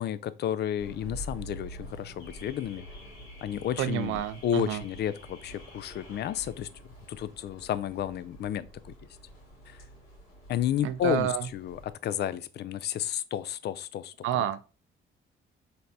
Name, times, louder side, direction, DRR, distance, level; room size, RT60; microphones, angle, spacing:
voice 1, 0.0-2.8 3.4-6.7 7.1-8.9 9.7-9.8 10.5-14.1, left 10 dB, 55° left, 0.4 m, -32 dB
Car / Alarm, 0.8-11.9, equal, 80° left, 2.3 m, -47 dB
voice 2, 3.8-4.8 10.8-11.5 14.2-14.6, right 11 dB, 85° right, 0.5 m, -29 dB
4.1 x 3.3 x 2.8 m
cardioid pair, 90°, 20 cm